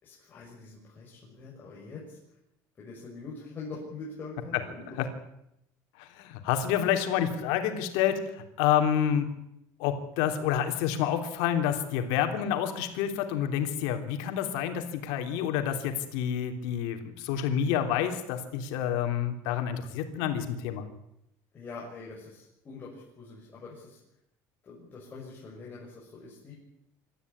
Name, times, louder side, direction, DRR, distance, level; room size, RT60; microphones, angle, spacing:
voice 1, 0.0-2.4 2.8-5.0 21.5-24.0 24.6-26.5, left 3 dB, 25° left, -5 dB, 6.6 m, -44 dB
voice 2, 6.0-9.3 9.8-20.8, left 9 dB, 85° left, 6 dB, 3.3 m, -28 dB
25.0 x 13.5 x 10.0 m, 0.82 s
cardioid pair, 155°, 8 cm